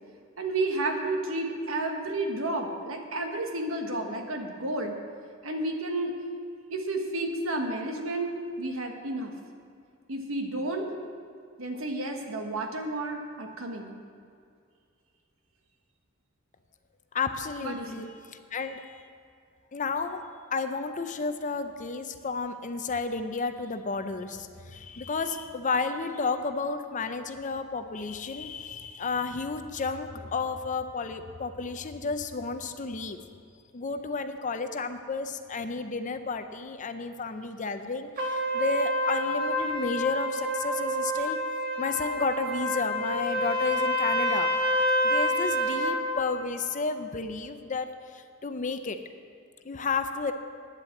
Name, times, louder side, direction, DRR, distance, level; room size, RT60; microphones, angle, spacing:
voice 1, 0.4-5.0 5.4-6.2 6.7-9.3 10.1-10.9 11.6-13.9 17.6-18.0, right 2 dB, 80° right, 3 dB, 1.4 m, -31 dB
voice 2, 17.1-19.0 19.7-20.2 20.5-33.2 33.7-41.4 41.8-44.5 45.0-49.0 49.6-50.3, left 4 dB, 40° left, 8 dB, 0.6 m, -32 dB
Trumpet, 38.2-46.0, equal, 45° right, 1.3 m, -28 dB
9.9 x 7.5 x 7.7 m, 2.3 s
head